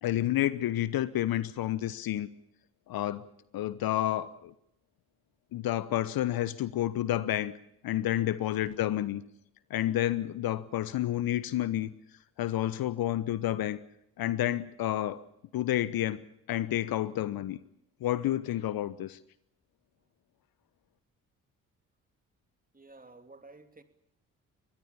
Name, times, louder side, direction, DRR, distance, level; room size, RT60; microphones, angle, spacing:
voice 1, 0.0-2.3 2.9-3.2 3.5-4.5 5.5-7.5 7.8-9.2 9.7-11.9 12.4-13.8 14.2-15.2 15.5-17.6 18.0-19.2, left 13 dB, 55° left, 1.1 m, -30 dB
voice 2, 22.7-23.8, right 3 dB, 20° right, 3.0 m, -52 dB
23.5 x 21.0 x 7.2 m
hypercardioid pair, 45°, 42 cm